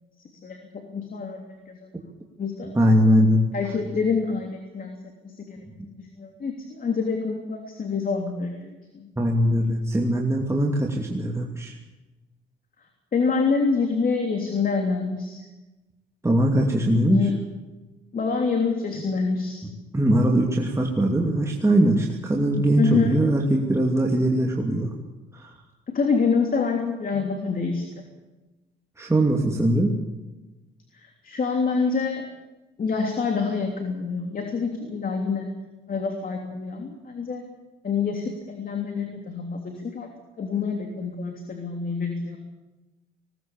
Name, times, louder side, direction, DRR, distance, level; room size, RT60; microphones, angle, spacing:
voice 1, 0.4-1.9 2.4-2.7 3.5-9.1 13.1-15.4 17.1-17.4 18.1-19.6 22.8-23.2 25.9-28.1 30.9-32.3 32.8-35.5 35.9-37.5 37.8-40.1 40.4-42.4, left 5 dB, 45° left, 3 dB, 3.2 m, -26 dB
voice 2, 2.7-3.4 9.2-11.8 16.2-17.2 19.9-24.9 25.3-25.5 29.0-30.0, right 1 dB, 15° right, -1 dB, 2.7 m, -21 dB
20.5 x 18.0 x 7.3 m, 1.1 s
cardioid pair, 90°, 20 cm